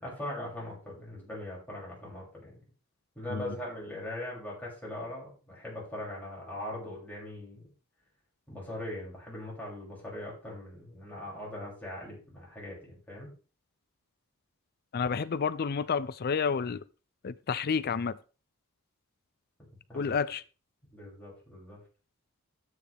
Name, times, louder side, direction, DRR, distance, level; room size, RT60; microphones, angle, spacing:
voice 1, 0.0-2.6 3.1-7.7 8.5-13.3 19.9-20.2 20.9-21.8, left 1 dB, 10° left, 6.7 m, -40 dB
voice 2, 14.9-16.8 17.2-18.2 19.9-20.4, left 6 dB, 45° left, 0.4 m, -30 dB
12.0 x 9.2 x 3.4 m
head